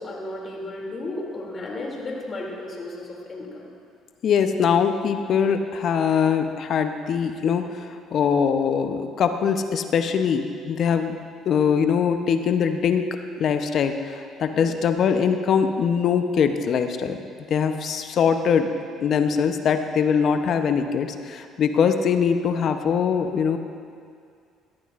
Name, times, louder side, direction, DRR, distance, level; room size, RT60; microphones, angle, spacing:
voice 1, 0.0-3.7 14.5-14.7, left 2 dB, 40° left, -2 dB, 2.7 m, -34 dB
voice 2, 4.2-11.2 11.5-13.1 13.4-17.2 17.5-23.6, left 7 dB, 55° left, 8 dB, 0.8 m, -22 dB
19.5 x 13.0 x 2.5 m, 2.3 s
hypercardioid pair, 60°, 0 cm